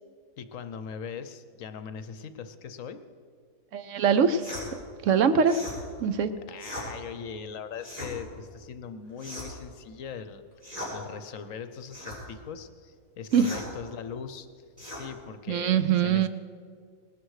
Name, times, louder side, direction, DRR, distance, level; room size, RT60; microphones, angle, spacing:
voice 1, 0.4-3.0 6.5-10.4 10.9-14.5 15.0-16.3, left 6 dB, 70° left, 10 dB, 1.1 m, -40 dB
voice 2, 3.7-4.4 5.0-5.6 6.0-6.4 13.3-13.6 15.5-16.3, right 6 dB, 65° right, 12 dB, 0.9 m, -23 dB
sound 1, 4.4-4.7 5.4-5.8 6.6-6.9 7.8-8.1 9.2-9.6 10.6-10.9 11.9-12.2 13.3-13.7 14.8-15.0, left 1 dB, 25° right, 5.3 m, -38 dB
19.0 x 13.0 x 4.8 m, 2.1 s
omnidirectional pair, 1.5 m